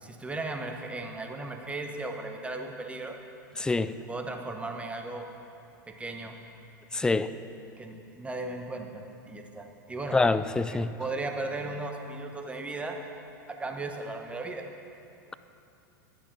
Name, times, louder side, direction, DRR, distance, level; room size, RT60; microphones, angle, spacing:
voice 1, 0.0-3.2 4.1-5.3 5.9-6.4 7.8-10.2 10.7-13.0 13.5-14.6, right 2 dB, 10° right, 4 dB, 1.2 m, -36 dB
voice 2, 3.6-3.9 6.9-7.3 10.1-10.9, left 3 dB, 5° left, 13 dB, 0.4 m, -25 dB
11.5 x 10.0 x 5.6 m, 2.7 s
figure-of-eight pair, 90°, 11 cm